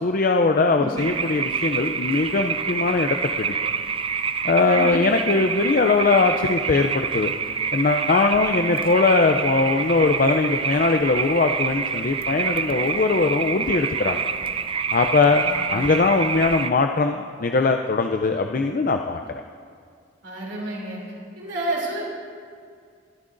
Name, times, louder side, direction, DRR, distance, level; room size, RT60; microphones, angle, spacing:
voice 1, 0.0-3.5 4.4-7.3 7.7-14.3 14.9-15.4 15.7-19.2, left 3 dB, 45° left, 5 dB, 0.4 m, -21 dB
voice 2, 0.7-1.0 4.6-5.0 15.2-16.0 20.2-21.0 21.4-22.0, right 1 dB, 70° right, -3 dB, 2.9 m, -30 dB
sound 1, 1.0-16.7, right 6 dB, 30° right, 0.4 m, -27 dB
23.5 x 12.0 x 2.6 m, 2.2 s
head